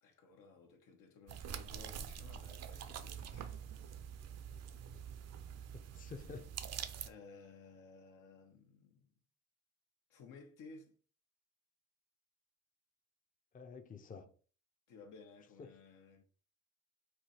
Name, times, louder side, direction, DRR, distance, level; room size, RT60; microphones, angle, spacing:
voice 1, 0.0-3.7 7.0-9.1 10.1-11.0 14.9-16.2, left 4 dB, 85° left, 1.1 m, -57 dB
sound 1, 1.3-7.1, right 8 dB, 55° right, 0.5 m, -46 dB
voice 2, 4.5-5.0 5.7-6.5 13.5-14.3 15.6-15.8, left 4 dB, 30° left, 0.6 m, -51 dB
4.7 x 2.6 x 4.2 m
cardioid pair, 90°, 30 cm